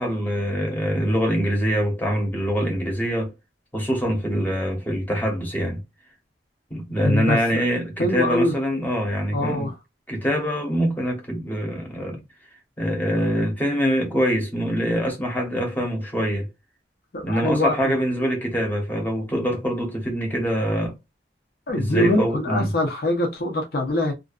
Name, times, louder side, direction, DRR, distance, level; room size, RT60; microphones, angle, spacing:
voice 1, 0.0-3.3 3.7-5.8 6.7-9.7 10.1-12.2 12.8-16.5 17.2-21.0 21.7-22.7, equal, 10° left, 0.8 m, -24 dB
voice 2, 7.0-7.6 8.0-8.5 9.3-9.7 17.1-17.8 21.7-24.1, left 1 dB, 55° left, 0.6 m, -23 dB
2.5 x 2.2 x 2.3 m
head